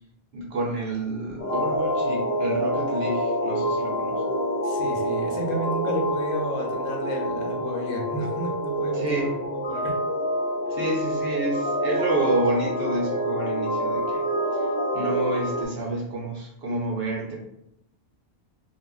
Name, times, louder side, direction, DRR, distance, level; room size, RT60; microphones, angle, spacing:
voice 1, 0.3-4.2 8.9-9.3 10.7-14.3 14.5-14.7 14.9-17.4, right 2 dB, 55° right, -3 dB, 0.9 m, -29 dB
sound 1, 1.4-15.7, equal, 60° left, 0.8 m, -27 dB
voice 2, 4.6-9.9, equal, 85° left, 1 dB, 1.0 m, -32 dB
2.8 x 2.5 x 2.3 m, 0.78 s
omnidirectional pair, 1.4 m